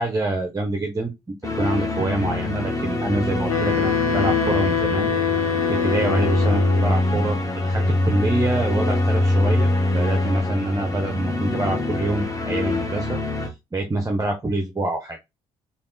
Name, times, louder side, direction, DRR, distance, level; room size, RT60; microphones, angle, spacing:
voice 1, 0.0-5.1 5.4-15.2, right 2 dB, 20° right, 3 dB, 0.6 m, -26 dB
sound 1, 1.4-13.5, left 2 dB, 20° left, 0.9 m, -23 dB
Wind instrument woodwind instrument, 3.5-6.9, left 8 dB, 80° left, 0.6 m, -24 dB
3.4 x 2.4 x 2.6 m, 0.22 s
figure-of-eight pair, 40°, 18 cm